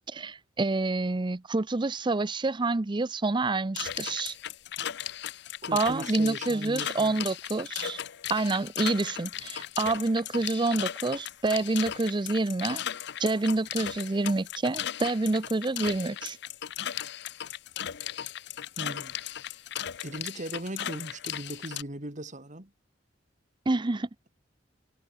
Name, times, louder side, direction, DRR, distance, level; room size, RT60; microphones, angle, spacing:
voice 1, 0.1-4.3 5.7-8.0 8.3-12.8 13.2-16.4 23.7-24.1, right 3 dB, 25° right, 0.5 m, -28 dB
sound 1, 3.8-21.8, left 10 dB, 65° left, 0.7 m, -37 dB
voice 2, 5.6-7.2 18.8-19.2 20.0-22.7, right 1 dB, 40° right, 3.4 m, -38 dB
head